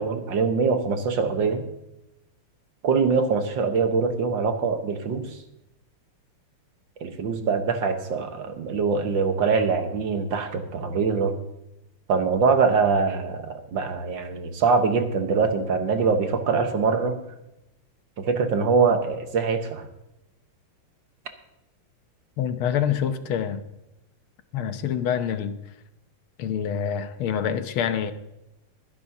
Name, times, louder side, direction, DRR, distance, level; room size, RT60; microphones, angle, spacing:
voice 1, 0.0-1.6 2.8-5.3 7.0-11.3 12.1-17.2 18.2-19.8, right 5 dB, 60° right, 1.8 m, -23 dB
voice 2, 22.4-23.6 24.5-25.6 26.4-28.1, left 8 dB, 75° left, 1.7 m, -26 dB
22.0 x 10.5 x 2.8 m
omnidirectional pair, 2.4 m